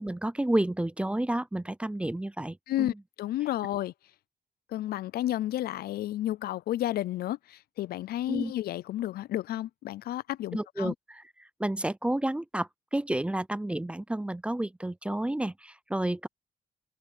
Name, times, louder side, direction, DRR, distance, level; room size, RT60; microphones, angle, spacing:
voice 1, 0.0-2.9 8.3-8.5 10.5-11.2 11.6-16.3, right 1 dB, 5° right, 0.4 m, -30 dB
voice 2, 2.7-3.9 4.7-10.9, left 13 dB, 80° left, 0.4 m, -32 dB
open air
cardioid pair, 110°, 16 cm